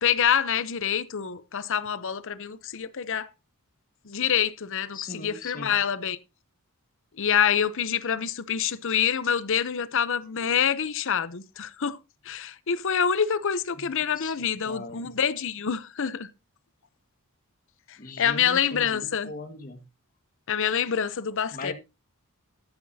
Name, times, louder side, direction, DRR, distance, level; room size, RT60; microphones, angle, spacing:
voice 1, 0.0-3.3 4.1-6.2 7.2-12.0 12.3-16.3 17.9-19.3 20.5-21.7, left 8 dB, 60° left, 0.7 m, -26 dB
voice 2, 4.9-5.8 13.7-13.9 14.1-15.1 18.0-19.8 21.5-21.7, left 3 dB, 40° left, 1.6 m, -39 dB
13.0 x 9.6 x 2.8 m
head